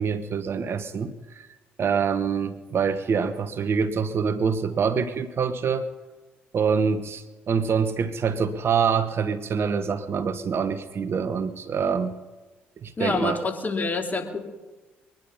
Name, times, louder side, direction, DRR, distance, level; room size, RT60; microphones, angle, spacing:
voice 1, 0.0-1.5 1.8-5.9 6.5-12.1 12.8-13.4, right 6 dB, 45° right, 11 dB, 1.1 m, -25 dB
voice 2, 13.0-14.4, left 3 dB, 30° left, 4 dB, 2.9 m, -27 dB
23.0 x 10.5 x 5.6 m, 1.2 s
hypercardioid pair, 55°, 6 cm